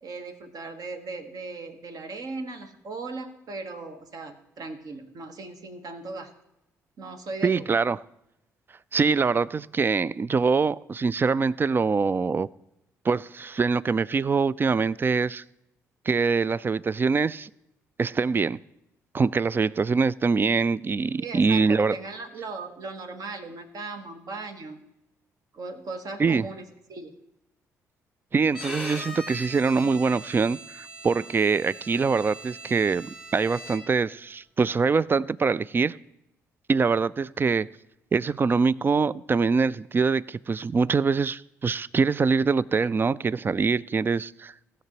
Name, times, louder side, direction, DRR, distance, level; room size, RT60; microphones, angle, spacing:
voice 1, 0.0-6.3 7.0-7.7 21.2-24.8 25.5-27.2, right 3 dB, 50° right, 7 dB, 1.3 m, -38 dB
voice 2, 7.4-8.0 8.9-12.5 13.0-15.4 16.1-17.5 18.0-18.6 19.1-22.0 26.2-26.5 28.3-36.0 36.7-37.7 38.1-44.5, right 4 dB, 25° right, 22 dB, 0.3 m, -24 dB
Bowed string instrument, 28.5-34.1, right 1 dB, 10° right, 1.9 m, -40 dB
18.5 x 6.2 x 3.0 m, 0.85 s
figure-of-eight pair, 40°, 8 cm